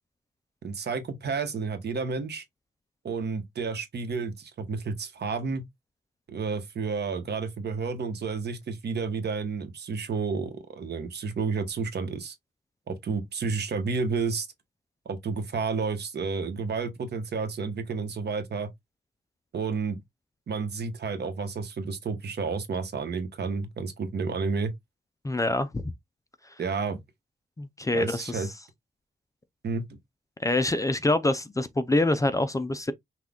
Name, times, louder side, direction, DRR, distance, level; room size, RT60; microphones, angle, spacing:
voice 1, 0.6-2.4 3.0-5.6 6.3-12.3 12.9-14.5 15.0-18.7 19.5-20.0 20.5-24.7 26.6-27.0 27.9-28.5 29.6-29.9, right 4 dB, 65° right, 1.0 m, -31 dB
voice 2, 25.2-25.8 27.6-28.5 30.4-32.9, left 2 dB, 20° left, 0.4 m, -25 dB
6.0 x 2.3 x 3.6 m
wide cardioid pair, 180°, 18 cm